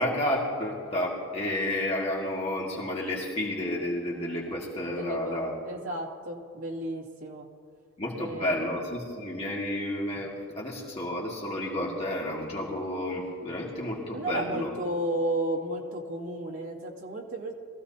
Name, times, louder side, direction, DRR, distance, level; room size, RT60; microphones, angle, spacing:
voice 1, 0.0-5.5 8.0-14.7, left 1 dB, 30° left, -4 dB, 2.0 m, -31 dB
voice 2, 4.9-7.5 8.1-8.8 14.1-17.5, right 1 dB, 75° right, -3 dB, 2.5 m, -33 dB
22.0 x 15.0 x 2.9 m, 2.3 s
head